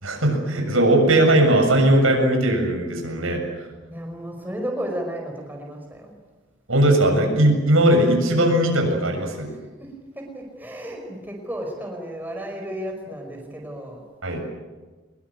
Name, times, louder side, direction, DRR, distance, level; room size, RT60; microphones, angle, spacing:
voice 1, 0.0-3.4 6.7-9.5 14.2-14.4, right 1 dB, 85° right, 3 dB, 7.0 m, -18 dB
voice 2, 3.9-6.1 9.5-14.0, equal, 10° right, 1 dB, 5.2 m, -33 dB
24.5 x 21.5 x 9.3 m, 1.3 s
head